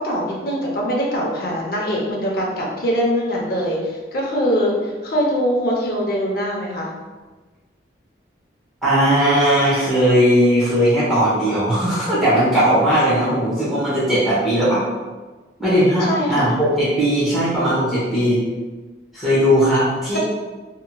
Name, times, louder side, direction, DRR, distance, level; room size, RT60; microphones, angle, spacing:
voice 1, 0.0-6.9 16.0-16.5, equal, 50° left, -3 dB, 0.6 m, -22 dB
voice 2, 8.8-14.8 15.6-18.4 19.1-20.2, equal, ahead, -11 dB, 0.9 m, -18 dB
2.8 x 2.7 x 2.2 m, 1.3 s
head